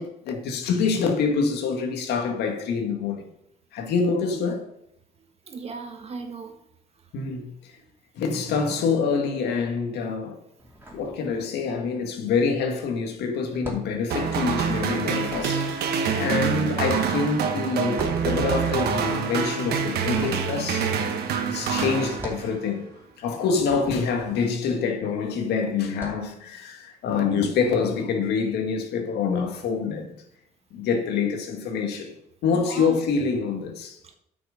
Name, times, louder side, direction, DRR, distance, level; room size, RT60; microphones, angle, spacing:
voice 1, 0.0-3.3 3.7-4.7 7.1-7.7 8.2-10.4 10.9-20.9 21.5-22.9 23.2-30.2 30.7-32.1 32.4-34.0, left 5 dB, 80° left, 1.9 m, -26 dB
voice 2, 5.5-6.6 32.5-33.0 34.0-34.1, right 4 dB, 35° right, 1.5 m, -36 dB
sound 1, 10.6-11.8 12.1-25.3 25.8-26.3, right 1 dB, 15° right, 2.7 m, -43 dB
sound 2, 14.1-22.7, right 6 dB, 70° right, 1.3 m, -26 dB
9.0 x 6.3 x 5.1 m
cardioid pair, 110°, 17 cm